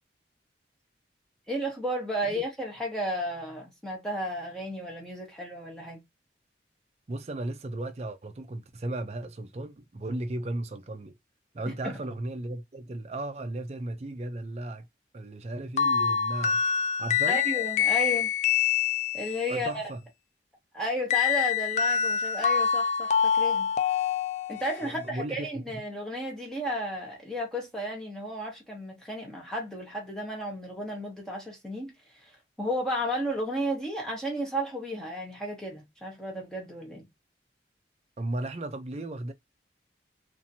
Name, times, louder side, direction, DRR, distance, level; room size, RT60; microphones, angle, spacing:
voice 1, 1.5-6.0 11.7-12.0 17.3-18.3 19.1-19.8 20.7-23.7 24.5-37.0, equal, 5° left, 0.8 m, -33 dB
voice 2, 7.1-11.2 11.5-14.9 15.1-16.6 17.0-17.4 19.5-20.0 24.8-25.6 38.2-39.3, right 2 dB, 35° right, 0.4 m, -35 dB
sound 1, 15.8-19.5 21.1-24.9, left 7 dB, 40° left, 0.3 m, -26 dB
2.8 x 2.5 x 2.7 m
head